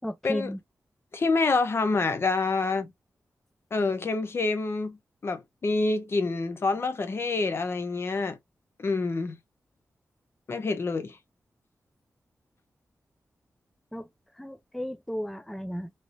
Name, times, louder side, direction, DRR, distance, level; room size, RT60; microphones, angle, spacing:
voice 1, 0.0-0.6 13.9-15.9, equal, ahead, 0.3 m, -35 dB
voice 2, 1.1-2.9 3.7-5.0 5.2-8.4 8.8-9.4 10.5-11.2, left 3 dB, 45° left, 0.6 m, -27 dB
3.3 x 2.8 x 2.5 m
wide cardioid pair, 140°, 6 cm